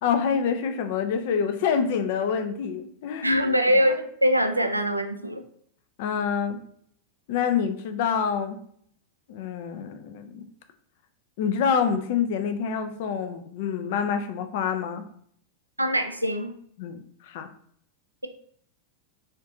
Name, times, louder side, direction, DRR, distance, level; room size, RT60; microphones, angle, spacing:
voice 1, 0.0-3.3 6.0-6.6 7.3-8.6 9.3-10.4 11.4-15.0 16.8-17.5, left 7 dB, 50° left, 8 dB, 0.4 m, -26 dB
voice 2, 3.2-5.4 15.8-16.5, equal, 85° right, 7 dB, 0.3 m, -23 dB
4.3 x 2.5 x 2.7 m, 0.63 s
figure-of-eight pair, 90°, 0 cm